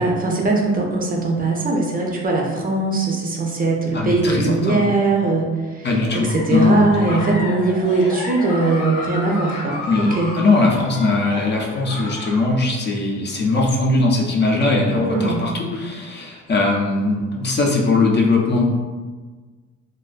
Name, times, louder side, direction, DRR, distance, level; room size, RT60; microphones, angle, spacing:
voice 1, 0.0-5.9 6.3-10.3 14.9-15.4, right 3 dB, 30° right, -1 dB, 0.4 m, -20 dB
voice 2, 3.9-4.8 5.8-7.4 9.9-18.7, left 3 dB, 35° left, -1 dB, 0.4 m, -20 dB
Giggle, 5.8-12.5, left 2 dB, 90° left, 0.7 m, -32 dB
2.4 x 2.2 x 2.4 m, 1.4 s
cardioid pair, 90°, 30 cm